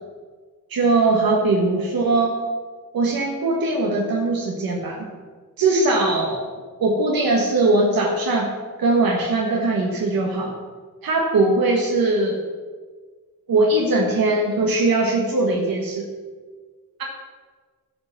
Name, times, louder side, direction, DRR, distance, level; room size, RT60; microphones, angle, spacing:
voice 1, 0.7-2.4 2.9-5.1 5.6-6.5 6.8-8.5 8.8-10.5 11.0-12.4 13.5-16.1, right 2 dB, 85° right, -1 dB, 1.6 m, -20 dB
12.0 x 5.1 x 6.7 m, 1.5 s
wide cardioid pair, 125°, 35 cm